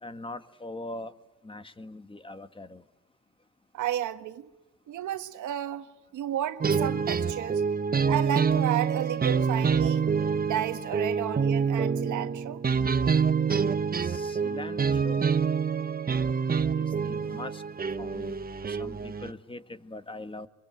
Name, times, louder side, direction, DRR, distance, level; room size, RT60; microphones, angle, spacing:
voice 1, 0.0-1.1 1.4-2.8 13.2-13.6 14.0-15.4 16.7-17.6 18.0-18.3 18.7-20.5, left 2 dB, 15° left, 1.7 m, -42 dB
voice 2, 3.7-4.5 4.9-5.9 6.1-7.6 8.1-10.1 10.4-12.6, right 11 dB, 80° right, 1.6 m, -32 dB
sound 1, 6.6-19.3, right 6 dB, 30° right, 1.0 m, -26 dB
24.5 x 23.0 x 9.3 m
cardioid pair, 90°, 30 cm